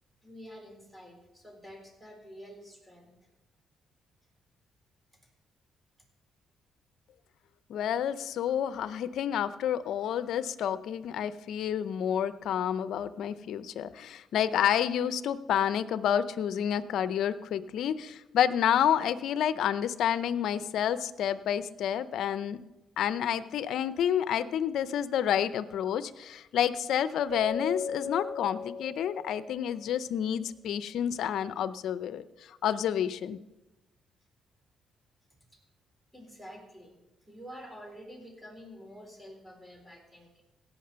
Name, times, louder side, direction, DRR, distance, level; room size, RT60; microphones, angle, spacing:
voice 1, 0.2-3.1 36.1-37.0 37.3-40.4, equal, 5° right, 1 dB, 3.9 m, -48 dB
voice 2, 7.7-22.6 23.0-33.4, left 9 dB, 75° left, 15 dB, 0.6 m, -29 dB
Keyboard (musical), 27.3-29.7, left 4 dB, 25° right, 3.6 m, -37 dB
17.0 x 5.9 x 6.8 m, 1.0 s
cardioid pair, 90°, 0 cm